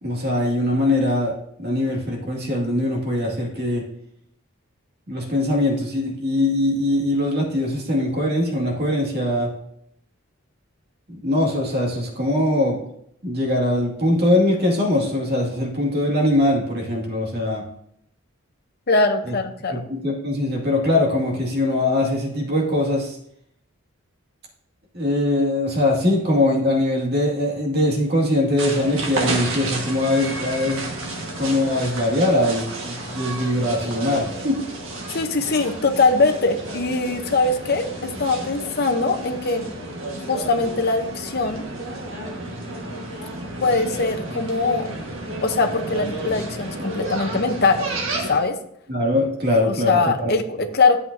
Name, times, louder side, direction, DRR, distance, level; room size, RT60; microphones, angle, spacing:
voice 1, 0.0-3.9 5.1-9.5 11.1-12.8 13.2-17.6 19.7-23.2 24.9-30.9 31.4-34.6 48.9-50.3, left 1 dB, 50° right, -1 dB, 2.2 m, -22 dB
voice 2, 18.9-19.8 35.1-39.7 40.2-41.6 43.6-44.9 45.4-47.9 48.2-48.6 49.7-51.0, left 3 dB, 45° left, 5 dB, 0.8 m, -21 dB
sound 1, 28.6-48.4, right 2 dB, 65° right, 1.6 m, -31 dB
11.0 x 7.4 x 2.7 m, 0.72 s
head